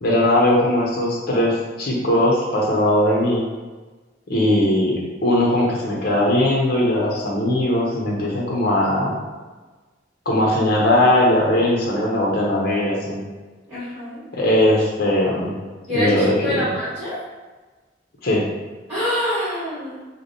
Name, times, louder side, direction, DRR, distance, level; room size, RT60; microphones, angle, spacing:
voice 1, 0.0-3.4 4.3-9.2 10.3-13.2 14.3-15.5 15.9-16.7 18.2-18.4, left 1 dB, 55° left, -3 dB, 0.7 m, -19 dB
voice 2, 13.7-14.2 15.9-17.2 18.9-20.0, equal, 10° right, -15 dB, 1.5 m, -25 dB
3.3 x 2.1 x 3.9 m, 1.3 s
head